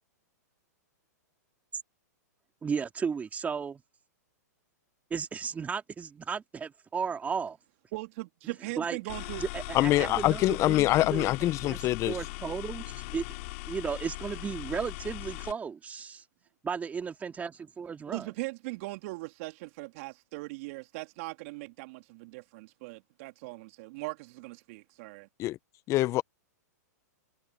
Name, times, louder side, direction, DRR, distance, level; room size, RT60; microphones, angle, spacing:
voice 1, 2.6-3.8 5.1-7.6 8.8-9.0 9.4-11.8 12.1-13.2 13.7-16.2 16.6-18.3, right 6 dB, 15° right, 2.4 m, -34 dB
voice 2, 7.9-9.4 18.1-25.3, right 23 dB, 50° right, 2.7 m, -40 dB
sound 1, 9.1-15.5, left 23 dB, 50° left, 3.9 m, -39 dB
voice 3, 9.7-12.2 25.4-25.6 25.9-26.2, left 16 dB, 30° left, 0.9 m, -25 dB
hypercardioid pair, 115°, 9 cm